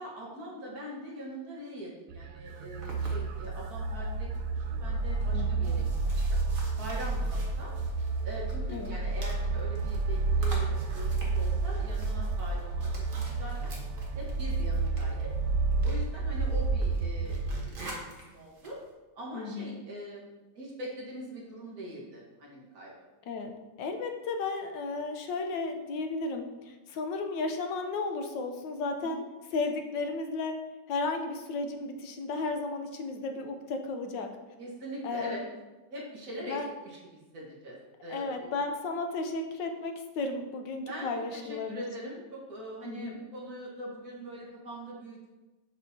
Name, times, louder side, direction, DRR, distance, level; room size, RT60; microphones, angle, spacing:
voice 1, 0.0-5.9 6.3-6.4 6.7-7.7 8.2-12.9 13.3-13.7 14.2-15.3 15.8-17.9 18.2-18.8 19.2-22.9 29.0-29.2 34.6-35.4 35.9-38.6 40.9-45.3, right 1 dB, 55° right, -4 dB, 2.0 m, -42 dB
sound 1, 2.1-17.7, right 3 dB, 75° right, 0.8 m, -30 dB
sound 2, 2.5-18.9, right 1 dB, 35° right, 1.1 m, -49 dB
voice 2, 5.3-5.7 8.7-9.0 19.3-19.7 23.3-29.2 29.5-30.6 30.9-34.3 35.0-35.4 36.4-36.7 38.1-41.8 42.8-43.2, left 3 dB, 85° left, 5 dB, 1.4 m, -34 dB
7.0 x 6.2 x 2.8 m, 1.1 s
omnidirectional pair, 2.0 m